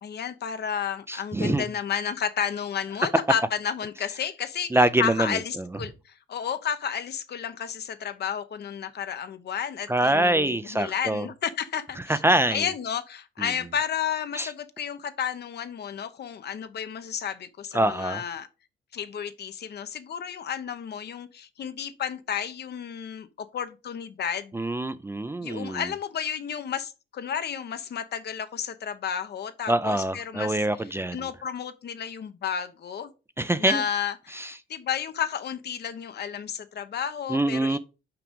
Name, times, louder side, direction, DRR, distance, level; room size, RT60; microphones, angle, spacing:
voice 1, 0.0-4.7 5.0-12.2 12.5-18.5 18.9-24.6 25.4-30.6 31.1-33.1 33.6-37.8, left 8 dB, 55° left, 0.9 m, -32 dB
voice 2, 1.1-1.6 4.7-5.7 9.9-11.3 12.1-12.7 13.4-13.5 14.3-14.5 17.7-18.2 24.5-25.8 29.7-31.3 33.4-33.8 34.3-34.5 37.3-37.8, right 1 dB, 10° right, 0.5 m, -25 dB
5.9 x 4.9 x 5.3 m
cardioid pair, 90°, 20 cm